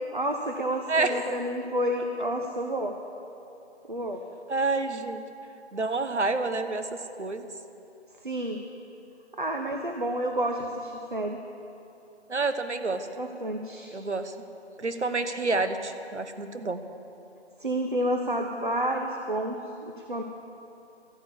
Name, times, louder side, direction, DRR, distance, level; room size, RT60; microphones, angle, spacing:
voice 1, 0.1-2.9 3.9-4.2 8.2-8.6 9.4-11.4 13.2-13.9 17.6-20.2, right 1 dB, 45° right, 4 dB, 0.9 m, -30 dB
voice 2, 0.9-1.4 4.5-5.2 5.7-6.9 7.2-7.5 12.3-13.1 13.9-14.3 14.8-16.8, right 3 dB, 85° right, 9 dB, 1.3 m, -28 dB
13.5 x 11.5 x 8.0 m, 2.9 s
figure-of-eight pair, 180°, 34 cm